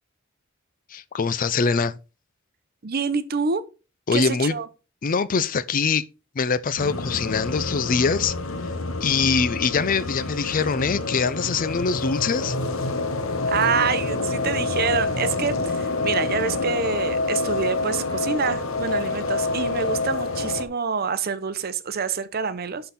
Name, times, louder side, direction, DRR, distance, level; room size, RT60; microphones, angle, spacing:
voice 1, 0.9-2.0 4.1-4.6 5.0-6.0 6.4-8.3 9.0-12.6, left 5 dB, 40° left, 0.5 m, -23 dB
voice 2, 2.8-3.7 4.1-4.7 13.5-22.9, right 5 dB, 50° right, 0.7 m, -26 dB
sound 1, 6.8-20.7, left 3 dB, 90° left, 1.1 m, -27 dB
11.5 x 3.9 x 4.2 m
head